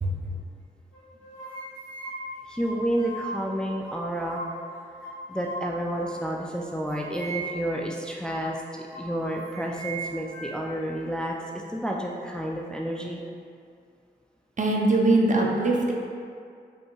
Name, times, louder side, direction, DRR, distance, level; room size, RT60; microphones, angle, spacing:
sound 1, 0.9-3.4 3.8-4.7 5.0-6.4 6.9-7.8 8.2-8.4 8.9-10.8, right 2 dB, 80° left, 1.2 m, -38 dB
voice 1, 2.5-4.4 5.3-11.3 11.7-13.2 15.5-15.7, right 1 dB, 5° left, -1 dB, 0.4 m, -30 dB
voice 2, 14.6-15.9, right 2 dB, 40° right, -1 dB, 0.6 m, -21 dB
5.2 x 2.8 x 2.3 m, 2.3 s
cardioid pair, 40°, 19 cm